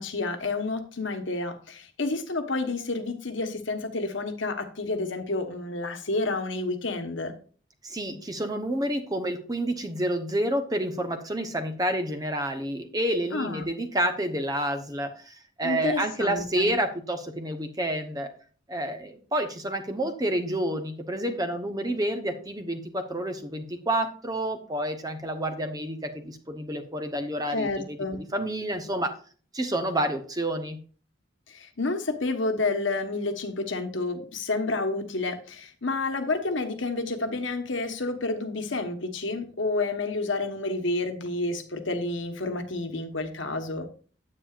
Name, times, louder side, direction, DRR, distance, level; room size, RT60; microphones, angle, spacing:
voice 1, 0.0-7.3 13.3-13.7 15.6-16.7 27.5-28.2 31.5-43.9, left 3 dB, 70° left, 7 dB, 1.2 m, -30 dB
voice 2, 7.8-18.3 18.7-29.1 29.5-30.8, right 1 dB, 20° right, 7 dB, 0.8 m, -29 dB
9.6 x 8.7 x 2.5 m, 0.41 s
head